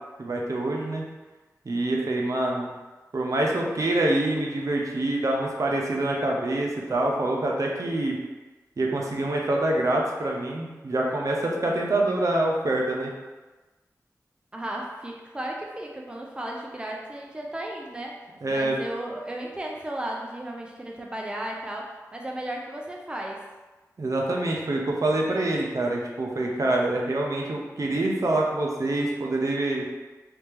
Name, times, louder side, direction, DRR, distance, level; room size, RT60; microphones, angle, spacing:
voice 1, 0.2-1.0 1.7-2.7 3.1-8.2 8.8-13.1 18.4-18.8 24.0-29.8, right 2 dB, 60° right, -1 dB, 0.6 m, -26 dB
voice 2, 14.5-23.4, right 1 dB, 15° right, -1 dB, 0.5 m, -35 dB
3.3 x 2.8 x 3.4 m, 1.2 s
wide cardioid pair, 60°, 6 cm